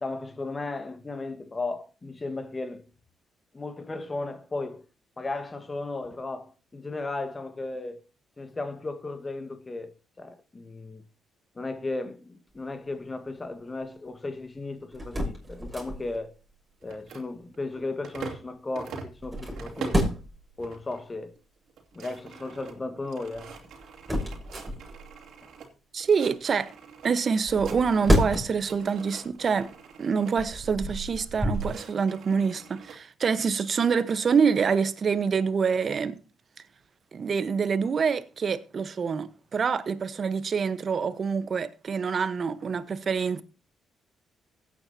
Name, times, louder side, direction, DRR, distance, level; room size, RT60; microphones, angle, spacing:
voice 1, 0.0-2.9 3.5-4.8 5.2-8.1 8.4-11.0 11.5-16.3 16.8-20.1 20.6-21.3 21.9-23.5, left 2 dB, 25° left, 1.6 m, -35 dB
sound 1, 14.9-16.2 19.1-20.4 23.3-25.1 27.4-28.7 29.3-29.4 30.2-31.7, equal, 15° right, 6.3 m, -29 dB
sound 2, 16.8-18.5 18.7-20.1 20.6-21.0 21.4-21.5 21.7-25.7 26.0-27.1 27.4-28.3 28.6-30.3 31.1-33.0, right 6 dB, 75° right, 2.8 m, -44 dB
voice 2, 25.9-26.7 27.0-29.7 30.0-36.2 37.1-43.4, right 6 dB, 50° right, 1.1 m, -26 dB
16.5 x 9.0 x 2.8 m
supercardioid pair, 70°, 0 cm